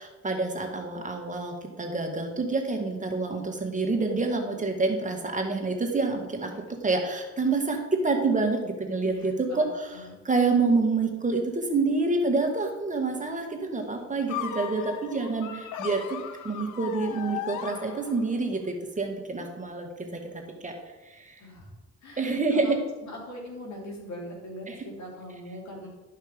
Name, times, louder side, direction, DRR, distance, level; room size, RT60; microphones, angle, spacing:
voice 1, 0.0-6.5 6.8-16.2 16.4-20.7 21.1-21.4 22.2-22.8 24.7-24.8, right 3 dB, 25° right, 3 dB, 1.9 m, -27 dB
voice 2, 9.0-10.2 21.4-21.7 22.0-22.7 23.0-25.9, left 1 dB, 65° left, -1 dB, 3.2 m, -42 dB
sound 1, 14.3-18.4, left 10 dB, 90° left, 0.9 m, -37 dB
11.5 x 5.7 x 5.2 m, 1.1 s
cardioid pair, 90°, 30 cm